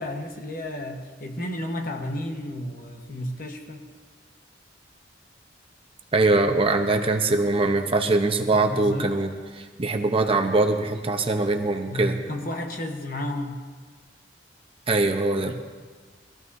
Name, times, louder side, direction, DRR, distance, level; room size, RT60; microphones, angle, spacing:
voice 1, 0.0-3.9 8.5-9.2 11.9-13.6 15.5-15.6, left 1 dB, 50° left, 3 dB, 1.3 m, -32 dB
voice 2, 6.1-12.2 14.9-15.5, right 2 dB, 30° right, 5 dB, 0.8 m, -22 dB
21.5 x 14.5 x 2.7 m, 1.5 s
head